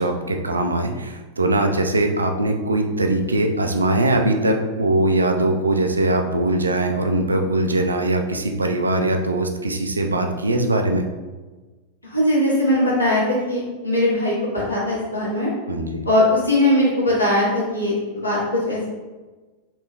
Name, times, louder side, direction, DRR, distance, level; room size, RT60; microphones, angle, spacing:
voice 1, 0.0-11.1 15.7-16.0, right 2 dB, 80° right, 4 dB, 0.3 m, -21 dB
voice 2, 12.0-15.5 16.0-18.4 18.6-18.8, left 1 dB, 80° left, -8 dB, 1.3 m, -20 dB
3.4 x 2.9 x 2.2 m, 1.2 s
figure-of-eight pair, 90°, 0 cm